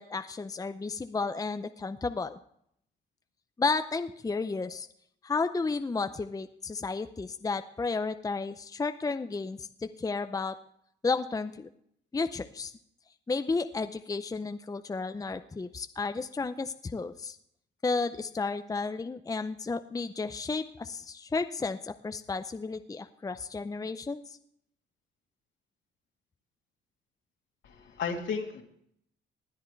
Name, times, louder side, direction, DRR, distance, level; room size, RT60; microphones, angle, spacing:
voice 1, 0.0-2.4 3.6-4.9 5.2-10.6 11.0-11.7 12.1-12.7 13.3-17.4 17.8-24.4, left 4 dB, 20° left, 9 dB, 0.6 m, -32 dB
voice 2, 27.6-28.6, left 5 dB, 70° left, 1 dB, 2.6 m, -34 dB
19.5 x 10.5 x 3.3 m, 0.69 s
cardioid pair, 90°, 20 cm